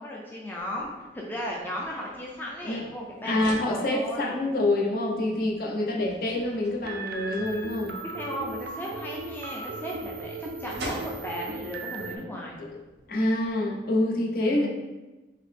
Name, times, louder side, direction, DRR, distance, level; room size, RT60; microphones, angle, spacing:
voice 1, 0.0-4.4 5.7-6.2 8.1-12.6 14.5-14.7, equal, 10° left, -3 dB, 0.4 m, -36 dB
sound 1, 0.6-13.5, right 1 dB, 85° right, 1.0 m, -47 dB
voice 2, 3.2-8.0 12.6-12.8 13.1-14.7, left 1 dB, 55° left, -1 dB, 0.6 m, -26 dB
sound 2, 6.8-12.2, right 3 dB, 60° right, 0.4 m, -37 dB
3.8 x 2.7 x 3.6 m, 1.1 s
head